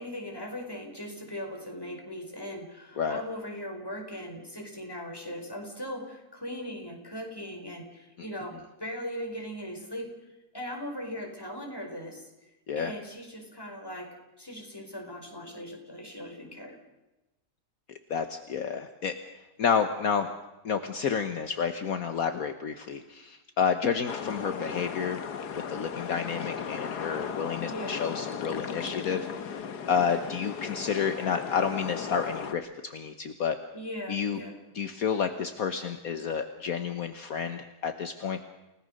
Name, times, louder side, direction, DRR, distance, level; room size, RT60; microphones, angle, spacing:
voice 1, 0.0-10.1 10.5-12.3 12.7-16.8 27.7-28.0 33.7-34.5, equal, 15° left, 2 dB, 4.9 m, -39 dB
voice 2, 18.1-19.1 19.6-20.3 20.6-25.2 25.5-29.6 29.9-33.6 34.1-34.4 34.7-38.4, left 6 dB, 65° left, 7 dB, 1.6 m, -30 dB
sound 1, 24.1-32.5, left 7 dB, 80° left, 1.8 m, -36 dB
29.5 x 18.0 x 6.6 m, 1.0 s
omnidirectional pair, 1.7 m